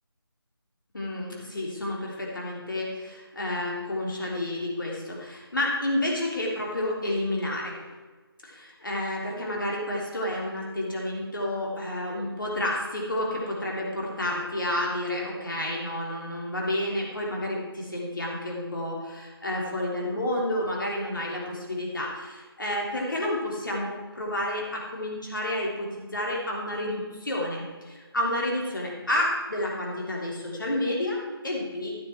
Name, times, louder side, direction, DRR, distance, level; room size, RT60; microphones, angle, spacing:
voice 1, 0.9-7.7 8.4-31.9, left 1 dB, 55° left, -2 dB, 3.3 m, -30 dB
13.5 x 7.2 x 4.5 m, 1.3 s
figure-of-eight pair, 180°, 13 cm